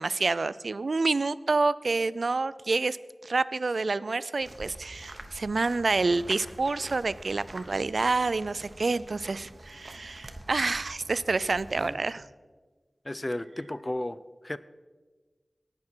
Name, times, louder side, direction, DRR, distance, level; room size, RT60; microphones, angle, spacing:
voice 1, 0.0-3.0 3.2-12.3, right 3 dB, 80° right, 17 dB, 0.3 m, -28 dB
sound 1, 4.4-11.9, right 1 dB, 50° right, 1.0 m, -46 dB
voice 2, 13.0-14.2 14.4-14.6, left 1 dB, 35° left, 14 dB, 0.5 m, -33 dB
18.0 x 6.1 x 4.4 m, 1.4 s
wide cardioid pair, 45°, 0 cm